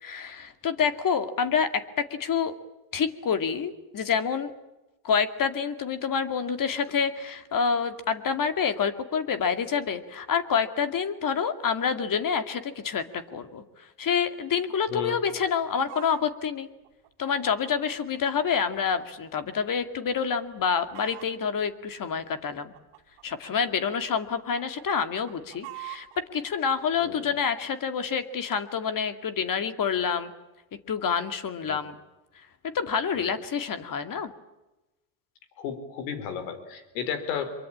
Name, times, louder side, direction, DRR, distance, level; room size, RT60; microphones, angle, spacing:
voice 1, 0.0-2.5 2.9-4.5 5.0-13.6 14.0-16.7 17.2-22.7 23.2-26.1 26.3-30.3 30.9-32.0 32.7-34.3, left 6 dB, 40° left, 10 dB, 2.4 m, -27 dB
voice 2, 14.9-15.2 27.0-27.3 31.7-31.8 33.2-33.3 35.6-37.5, left 7 dB, 85° left, 11 dB, 4.2 m, -33 dB
Chicken rooster, 15.4-16.2 16.8-19.1 19.4-19.5 20.1-20.3 20.6-21.5 22.2-24.0 24.4-26.2 26.9-27.0, right 21 dB, 75° right, 2.6 m, -45 dB
24.5 x 23.5 x 8.7 m, 1.0 s
supercardioid pair, 95°, 50 cm